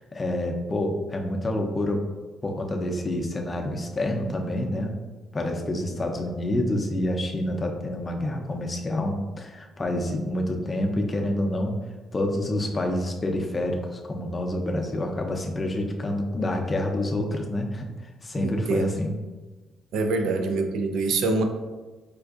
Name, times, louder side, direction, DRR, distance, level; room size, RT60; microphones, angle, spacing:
voice 1, 0.0-2.0 2.4-5.0 5.3-11.8 12.1-17.9 18.2-19.1, left 1 dB, 30° left, 2 dB, 0.5 m, -27 dB
voice 2, 18.4-18.9 19.9-21.4, right 3 dB, 80° right, 5 dB, 0.4 m, -25 dB
4.5 x 2.4 x 2.4 m, 1.2 s
cardioid pair, 90°, 0 cm